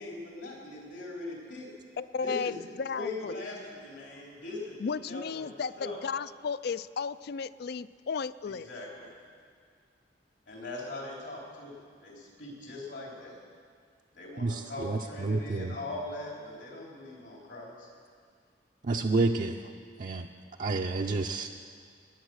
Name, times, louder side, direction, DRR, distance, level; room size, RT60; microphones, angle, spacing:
voice 1, 0.0-1.7 2.2-2.6 2.9-6.0 8.6-9.1 10.5-13.4 14.1-17.9, left 2 dB, 80° left, -3 dB, 4.1 m, -41 dB
voice 2, 2.0-3.4 4.8-8.7, left 5 dB, 60° left, 16 dB, 0.4 m, -34 dB
voice 3, 14.4-15.7 18.8-19.7 20.0-20.3 20.6-21.5, right 3 dB, 45° right, 2 dB, 0.5 m, -29 dB
20.5 x 8.9 x 6.4 m, 2.2 s
head